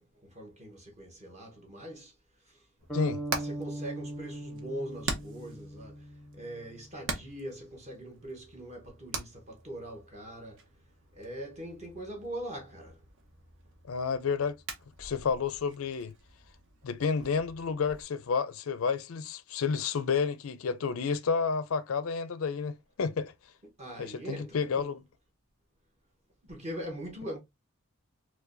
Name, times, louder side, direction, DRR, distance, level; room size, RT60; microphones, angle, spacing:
voice 1, 0.0-2.1 2.4-2.6 3.4-10.6 11.1-13.0 23.8-24.9 26.4-27.4, right 1 dB, 30° right, 1.0 m, -42 dB
Hammer, 2.8-18.0, right 3 dB, 55° right, 0.8 m, -44 dB
sound 1, 2.9-6.8, right 1 dB, 5° left, 0.6 m, -40 dB
voice 2, 13.9-14.6 15.0-16.1 16.8-23.3 24.0-25.0, left 5 dB, 65° left, 0.4 m, -30 dB
4.4 x 2.3 x 2.5 m
head